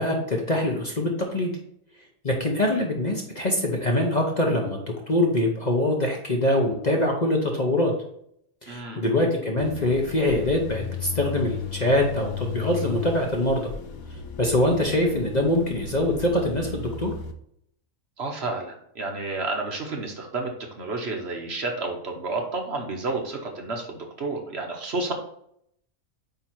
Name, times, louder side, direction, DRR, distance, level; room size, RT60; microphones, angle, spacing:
voice 1, 0.0-1.5 2.2-7.9 8.6-13.7 14.4-17.1, left 1 dB, 35° left, 1 dB, 0.9 m, -24 dB
voice 2, 8.7-9.0 18.2-20.5 20.8-25.1, right 3 dB, 50° right, 2 dB, 1.1 m, -30 dB
sound 1, 9.6-17.3, left 7 dB, 80° left, 1.2 m, -35 dB
8.7 x 2.9 x 4.5 m, 0.71 s
omnidirectional pair, 1.5 m